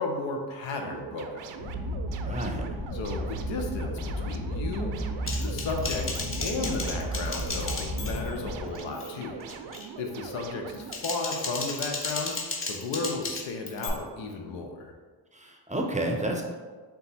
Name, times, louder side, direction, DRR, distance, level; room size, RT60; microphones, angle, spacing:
voice 1, 0.0-1.5 2.9-5.1 5.4-6.1 6.4-9.7 10.0-14.9, left 3 dB, 70° left, 3 dB, 0.7 m, -34 dB
sound 1, 0.8-11.0, right 6 dB, 65° right, 0.5 m, -42 dB
sound 2, 1.6-8.7, equal, 90° left, 1.3 m, -33 dB
voice 2, 2.2-2.8 15.3-16.5, right 1 dB, 15° right, 1 dB, 0.6 m, -31 dB
Typing, 5.3-8.4 8.7-9.1 9.5-9.9 10.7-13.9, left 3 dB, 25° left, 0.8 m, -34 dB
3.9 x 2.4 x 4.1 m, 1.4 s
supercardioid pair, 60°, 47 cm